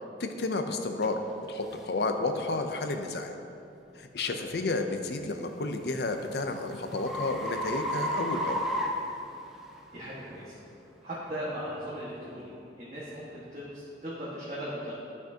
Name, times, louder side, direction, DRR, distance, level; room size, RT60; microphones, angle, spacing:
voice 1, 0.2-1.2 1.5-3.4 4.0-8.6, left 3 dB, 65° left, 6 dB, 0.6 m, -31 dB
sound 1, 1.0-1.1 1.7-1.9 2.5-2.7 5.3-9.8, equal, ahead, 0.6 m, -33 dB
voice 2, 4.3-4.6 9.9-10.6 11.0-14.9, equal, 40° right, -10 dB, 1.6 m, -38 dB
12.5 x 6.0 x 2.8 m, 2.7 s
head